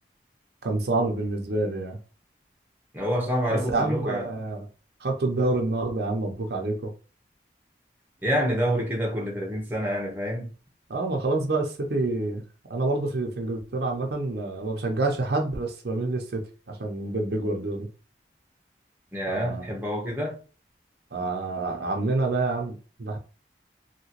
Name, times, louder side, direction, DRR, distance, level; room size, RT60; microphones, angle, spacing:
voice 1, 0.6-2.0 3.7-4.6 5.0-6.9 10.9-12.4 12.7-17.9 19.3-19.6 21.1-23.2, right 2 dB, 65° right, 0.6 m, -27 dB
voice 2, 2.9-4.3 8.2-10.5 19.1-20.4, equal, 10° right, 0.8 m, -27 dB
2.9 x 2.9 x 2.9 m
head